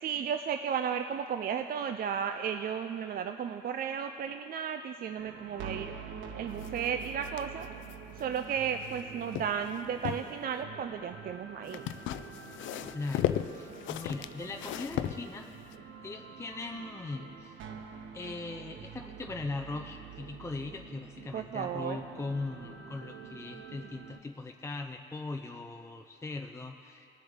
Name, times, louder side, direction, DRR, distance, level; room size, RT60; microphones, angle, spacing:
voice 1, 0.0-5.9 6.3-7.7 8.2-11.9 21.3-22.0, right 7 dB, 50° right, 7 dB, 0.4 m, -34 dB
sound 1, 5.2-24.2, right 7 dB, 80° right, 0.8 m, -47 dB
sound 2, 6.6-9.0 9.3-10.3 11.7-15.7, left 11 dB, 75° left, 0.4 m, -36 dB
voice 2, 12.9-15.5 16.0-17.7 18.1-27.1, left 3 dB, 15° left, 4 dB, 0.5 m, -40 dB
19.5 x 7.5 x 3.6 m, 2.7 s
cardioid pair, 90°, 20 cm